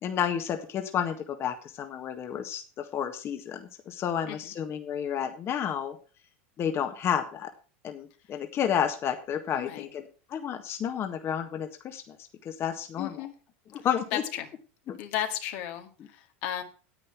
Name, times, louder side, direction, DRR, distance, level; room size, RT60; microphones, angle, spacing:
voice 1, 0.0-6.0 6.6-7.5 7.8-10.0 10.3-12.2 12.4-13.2 13.7-14.2 14.9-15.0, left 8 dB, 40° left, 6 dB, 1.6 m, -31 dB
voice 2, 13.0-13.3 14.1-14.5 15.0-16.6, left 11 dB, 65° left, 5 dB, 2.0 m, -34 dB
9.7 x 8.7 x 5.8 m, 0.36 s
hypercardioid pair, 100°, 7 cm